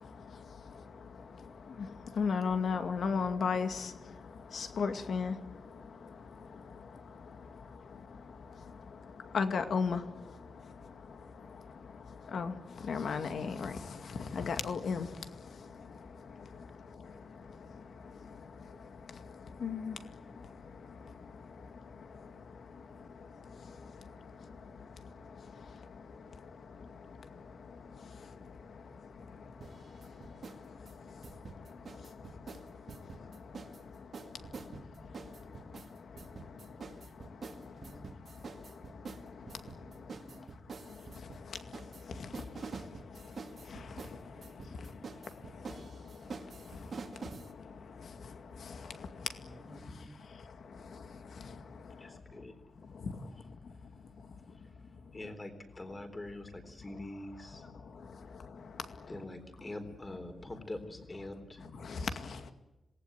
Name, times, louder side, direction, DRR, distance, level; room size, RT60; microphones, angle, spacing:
voice 1, 1.7-4.2 4.5-5.4 6.0-6.1 6.5-7.0 9.3-10.1 12.3-15.2 15.8-15.9 16.6-16.7 17.0-17.1 18.0-18.4 19.6-20.0 23.7-23.8 26.8-26.9 30.5-30.6 31.0-31.1 31.7-31.8 33.2-33.4 39.4-39.6 41.3-41.6 42.1-42.6 43.7-44.2 44.8-44.9 45.7-45.8 46.6-46.9 48.0-49.3 49.7-49.8 50.8-51.0 51.4-51.6 53.0-53.1 61.8-62.5, left 5 dB, 65° left, 2.2 m, -36 dB
sound 1, 29.6-30.6 30.9-33.8 34.1-47.5, right 4 dB, 50° right, 2.2 m, -47 dB
voice 2, 34.5-35.7 36.3-37.0 37.3-38.2 39.8-40.6 44.3-45.1 49.4-50.3, right 1 dB, 5° right, 2.8 m, -58 dB
voice 3, 52.0-52.5 55.1-57.7 59.1-61.7, left 1 dB, 20° left, 3.8 m, -44 dB
26.5 x 19.5 x 9.2 m
wide cardioid pair, 170°, 0 cm